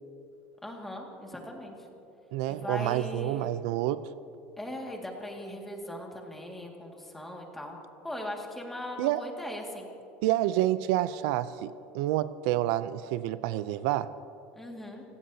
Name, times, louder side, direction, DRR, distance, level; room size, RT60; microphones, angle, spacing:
voice 1, 0.6-1.7 2.5-3.5 4.6-7.8 8.0-9.9 14.6-15.0, left 1 dB, 5° left, 0 dB, 2.0 m, -39 dB
voice 2, 2.3-4.1 9.0-9.2 10.2-14.1, right 14 dB, 70° right, 14 dB, 0.4 m, -28 dB
29.0 x 17.0 x 2.8 m, 3.0 s
cardioid pair, 165°, 4 cm